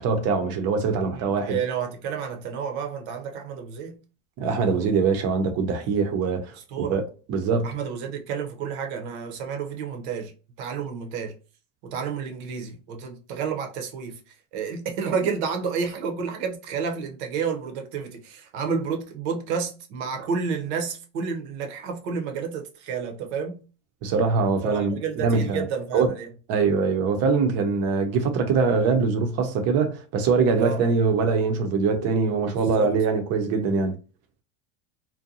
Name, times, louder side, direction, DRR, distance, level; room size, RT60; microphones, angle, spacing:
voice 1, 0.0-1.6 4.4-7.0 7.3-7.7 24.0-25.6 25.9-26.1 26.5-34.0, right 4 dB, 40° right, 0.7 m, -23 dB
voice 2, 1.1-4.0 6.7-7.0 7.6-10.3 10.6-11.3 11.8-14.2 14.5-23.6 24.6-26.3 30.6-30.9 32.5-32.9, right 6 dB, 65° right, 0.8 m, -30 dB
2.6 x 2.2 x 2.7 m
supercardioid pair, 130°, 37 cm